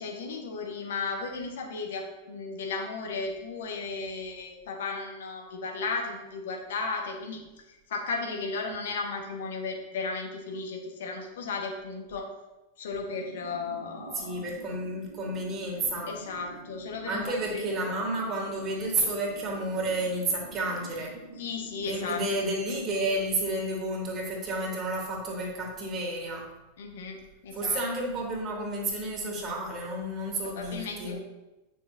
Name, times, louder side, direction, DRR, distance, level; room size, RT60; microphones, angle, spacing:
voice 1, 0.0-12.3 12.8-14.4 16.1-17.9 21.4-22.2 26.8-27.8 30.4-31.2, left 4 dB, 60° left, 2 dB, 1.4 m, -35 dB
sound 1, 13.1-22.4, right 2 dB, 80° right, 0.7 m, -47 dB
voice 2, 14.1-16.1 17.1-21.1 21.9-26.5 27.5-31.2, right 2 dB, 30° right, -2 dB, 2.3 m, -31 dB
9.4 x 6.0 x 2.7 m, 1.0 s
figure-of-eight pair, 90°, 0 cm